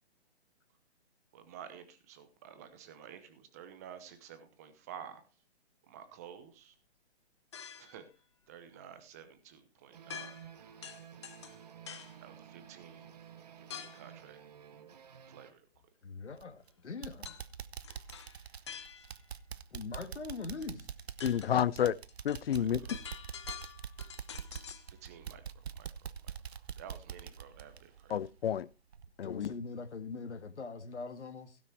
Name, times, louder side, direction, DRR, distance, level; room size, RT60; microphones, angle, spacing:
voice 1, 1.3-5.2 5.9-6.7 7.8-8.0 8.5-10.3 12.2-13.2 13.6-14.4 15.3-15.7 22.5-22.9 24.9-25.4 25.7-25.9 26.8-28.2, right 8 dB, 15° right, 0.9 m, -51 dB
sound 1, 7.5-8.0 10.1-10.6 10.8-12.2 13.7-14.1 17.3-17.5 17.8-19.3 20.6-20.7 21.0-24.9, left 8 dB, 25° left, 0.7 m, -47 dB
sound 2, 9.9-15.5, right 9 dB, 35° right, 1.0 m, -53 dB
voice 2, 16.0-17.4 19.7-20.9 29.2-31.6, left 4 dB, 90° left, 1.9 m, -42 dB
sound 3, 16.4-16.7 17.0-28.6 28.9-29.1 29.5-29.6, right 7 dB, 65° right, 1.0 m, -45 dB
voice 3, 21.2-22.0 22.2-22.8 28.1-28.7 29.2-29.5, left 9 dB, 60° left, 0.6 m, -30 dB
16.5 x 6.2 x 4.6 m
hypercardioid pair, 165°, 34 cm